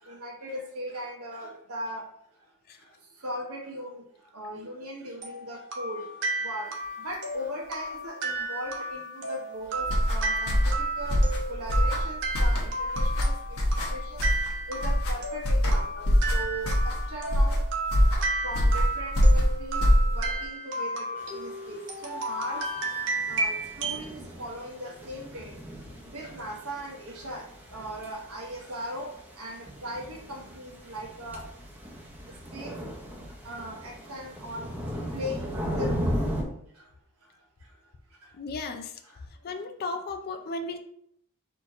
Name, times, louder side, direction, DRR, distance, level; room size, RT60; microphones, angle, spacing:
voice 1, 0.0-2.0 3.2-4.0 4.3-6.0 6.4-6.7 7.0-10.6 11.0-11.2 11.5-13.3 13.9-14.2 14.7-17.6 18.4-19.8 20.1-22.6 23.3-25.5 26.1-27.4 27.7-31.4 32.5-32.8 33.4-34.7 35.1-36.1, equal, 90° right, -1 dB, 1.3 m, -38 dB
sound 1, 5.2-24.1, right 2 dB, 60° right, 0.9 m, -33 dB
sound 2, 9.8-20.4, equal, 75° left, 1.3 m, -24 dB
sound 3, 21.2-21.8 22.2-36.4, equal, 10° right, 0.7 m, -37 dB
voice 2, 38.4-38.9 39.4-40.8, left 3 dB, 45° left, 5 dB, 0.4 m, -34 dB
4.4 x 2.9 x 4.1 m, 0.69 s
head